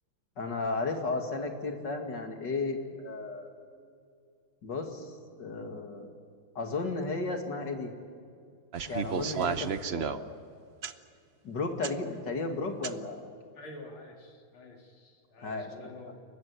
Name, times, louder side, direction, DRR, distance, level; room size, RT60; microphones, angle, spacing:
voice 1, 0.4-3.5 4.6-6.1 6.5-7.9 8.9-10.4 11.4-13.2 15.4-15.7, left 3 dB, 60° left, 4 dB, 2.9 m, -34 dB
sound 1, 8.7-10.2 10.8-10.9 11.8-11.9 12.8-12.9, right 7 dB, 60° right, 0.6 m, -32 dB
voice 2, 13.5-16.2, left 2 dB, 85° left, 1 dB, 3.4 m, -48 dB
28.5 x 15.5 x 9.7 m, 2.4 s
omnidirectional pair, 2.2 m